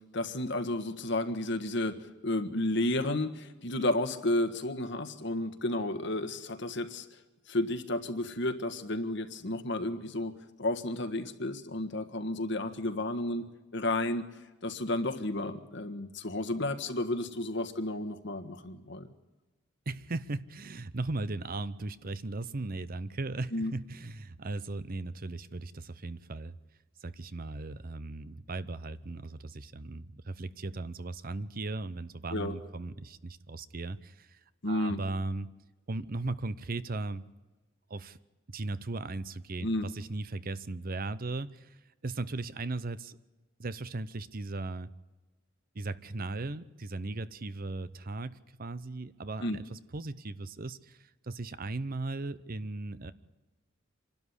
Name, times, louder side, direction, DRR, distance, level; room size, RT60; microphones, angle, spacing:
voice 1, 0.1-2.0 2.2-7.1 7.5-13.4 13.7-14.2 14.6-19.1 23.5-23.7 32.3-32.5 34.6-35.0 39.6-39.8 49.4-49.6, left 1 dB, 65° left, 7 dB, 1.6 m, -32 dB
voice 2, 19.9-26.6 27.0-34.4 34.7-35.5 35.9-37.2 37.9-38.2 38.5-43.2 43.6-44.9 45.7-53.1, right 2 dB, 50° right, 15 dB, 0.8 m, -37 dB
26.5 x 12.5 x 10.0 m, 1.2 s
head